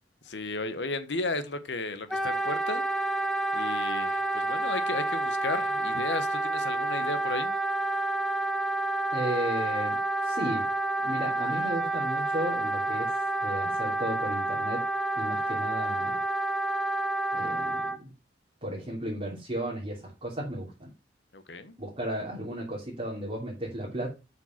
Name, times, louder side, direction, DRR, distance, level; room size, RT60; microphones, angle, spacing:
voice 1, 0.2-2.9 3.5-7.6 21.3-21.7, left 2 dB, 75° left, 1.3 m, -34 dB
Wind instrument woodwind instrument, 2.1-18.0, right 2 dB, ahead, 0.8 m, -29 dB
voice 2, 9.1-10.6 11.0-13.1 13.4-14.8 15.1-16.2 17.3-18.1 18.6-20.9 21.8-24.1, right 1 dB, 35° right, 2.9 m, -34 dB
8.0 x 5.8 x 5.8 m
head